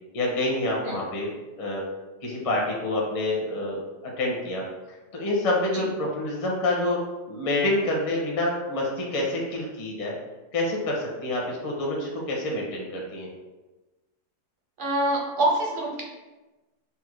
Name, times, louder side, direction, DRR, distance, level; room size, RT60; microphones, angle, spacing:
voice 1, 0.1-1.3 1.6-1.8 2.2-3.8 4.2-4.6 5.1-7.0 7.3-10.1 10.5-13.3, left 1 dB, 30° left, -2 dB, 0.6 m, -27 dB
voice 2, 14.8-16.0, right 1 dB, 45° right, -2 dB, 0.7 m, -25 dB
4.3 x 2.2 x 4.6 m, 1.1 s
omnidirectional pair, 1.7 m